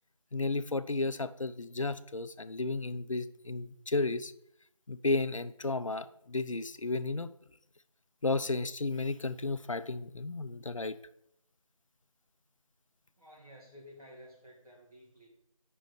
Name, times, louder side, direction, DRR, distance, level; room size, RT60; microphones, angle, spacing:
voice 1, 0.3-4.3 4.9-7.3 8.2-11.0, left 3 dB, 60° left, 13 dB, 0.5 m, -33 dB
voice 2, 13.2-15.3, equal, 85° right, -3 dB, 3.4 m, -53 dB
5.4 x 5.3 x 6.4 m, 0.76 s
figure-of-eight pair, 180°, 18 cm